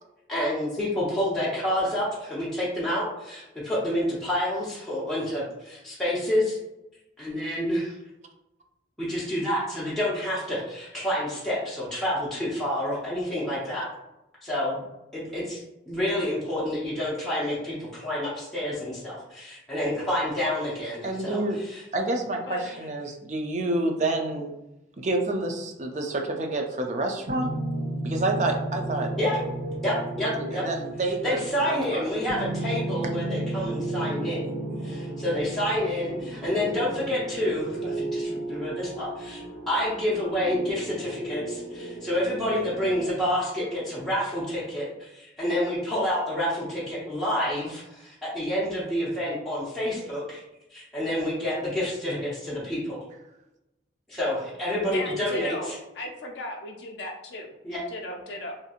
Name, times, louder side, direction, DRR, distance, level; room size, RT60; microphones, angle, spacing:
voice 1, 0.3-6.6 7.2-8.0 9.0-13.9 14.4-14.8 15.1-21.8 29.2-29.4 29.8-30.6 31.2-34.5 34.8-39.4 39.7-50.4 50.7-53.0 54.1-55.7 57.6-57.8, left 1 dB, ahead, -10 dB, 0.6 m, -28 dB
voice 2, 21.0-21.6 21.9-24.5 25.0-27.5 28.0-29.1 30.4-32.0, right 2 dB, 40° right, 3 dB, 0.4 m, -28 dB
voice 3, 22.4-22.7 54.9-57.5 57.9-58.5, left 1 dB, 70° left, 1 dB, 0.4 m, -36 dB
sound 1, 27.3-42.9, right 2 dB, 85° right, 0.8 m, -33 dB
2.8 x 2.6 x 2.4 m, 0.92 s
head